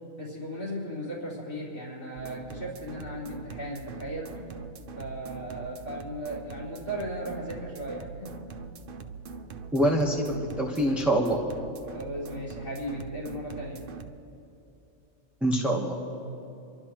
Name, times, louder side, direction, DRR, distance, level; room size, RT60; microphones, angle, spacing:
voice 1, 0.2-4.3 5.0-8.3 11.9-13.8, equal, 85° left, -8 dB, 4.1 m, -36 dB
sound 1, 2.2-14.1, right 4 dB, 50° right, 0.7 m, -42 dB
voice 2, 9.7-11.4 15.4-16.1, right 1 dB, ahead, -1 dB, 1.0 m, -25 dB
29.5 x 12.0 x 3.0 m, 2.9 s
omnidirectional pair, 1.4 m